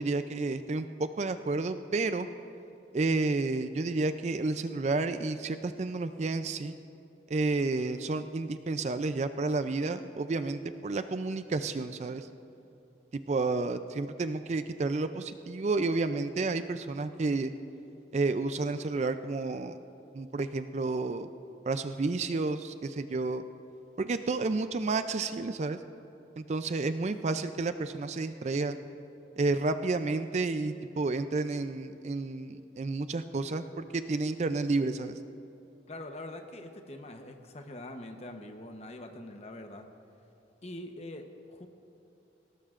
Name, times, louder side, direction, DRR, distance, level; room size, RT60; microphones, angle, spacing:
voice 1, 0.0-2.3 2.9-6.7 7.3-12.3 13.1-17.5 18.1-19.8 20.1-21.3 21.6-23.4 24.0-25.8 26.4-28.8 29.4-35.2, right 3 dB, 40° right, 10 dB, 0.4 m, -31 dB
voice 2, 35.9-39.9 40.6-41.7, left 1 dB, 35° left, 5 dB, 0.9 m, -44 dB
19.0 x 18.0 x 2.5 m, 2.7 s
head